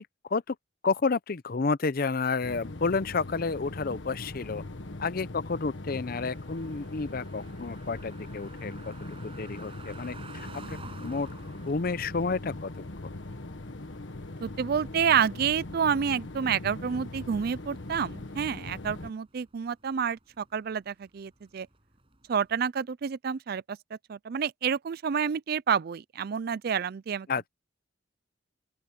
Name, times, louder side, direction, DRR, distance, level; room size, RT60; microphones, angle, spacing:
voice 1, 0.8-4.6 5.0-8.9 9.2-10.8 11.0-11.3 11.7-12.7 13.0-13.1 27.3-27.5, left 4 dB, 50° left, 0.6 m, -30 dB
sound 1, 2.4-19.1, left 2 dB, 75° left, 1.5 m, -41 dB
sound 2, 6.3-22.6, right 3 dB, 30° right, 6.6 m, -53 dB
voice 2, 14.4-21.7 22.3-23.8 24.1-27.3, right 7 dB, 55° right, 0.4 m, -29 dB
open air
head